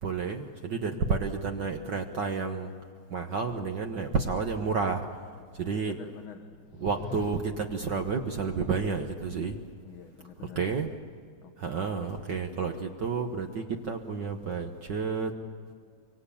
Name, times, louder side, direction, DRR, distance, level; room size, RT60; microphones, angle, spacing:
voice 1, 0.0-2.7 3.1-5.1 5.5-6.0 6.8-9.6 10.5-10.9 11.6-15.3, right 5 dB, 55° right, 5 dB, 1.2 m, -30 dB
voice 2, 5.6-6.5 9.8-10.6 11.4-11.9 12.2-12.3, left 8 dB, 55° left, 5 dB, 1.6 m, -47 dB
sound 1, 6.5-7.9, left 9 dB, 80° left, 2.2 m, -44 dB
25.0 x 24.5 x 8.5 m, 2.1 s
omnidirectional pair, 3.3 m